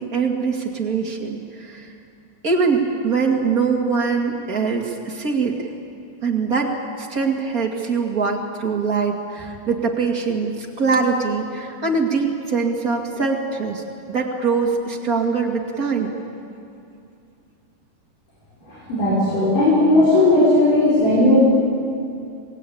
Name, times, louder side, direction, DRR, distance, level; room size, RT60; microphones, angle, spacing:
voice 1, 0.0-1.9 2.4-5.7 6.2-16.1, right 4 dB, 30° right, 1 dB, 2.0 m, -23 dB
voice 2, 18.7-21.4, left 1 dB, 55° left, -9 dB, 7.1 m, -16 dB
27.5 x 20.5 x 8.7 m, 2.5 s
omnidirectional pair, 4.4 m